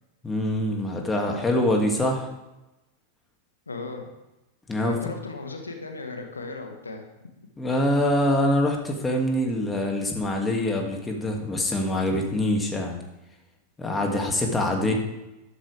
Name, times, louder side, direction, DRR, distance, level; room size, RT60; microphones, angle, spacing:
voice 1, 0.2-2.3 4.7-5.0 7.6-13.0 13.8-14.9, left 1 dB, 10° left, 1 dB, 2.4 m, -24 dB
voice 2, 3.7-4.1 4.8-7.1 14.8-14.9, left 3 dB, 75° left, 4 dB, 1.6 m, -36 dB
13.0 x 12.5 x 3.5 m, 0.99 s
figure-of-eight pair, 90°, 0 cm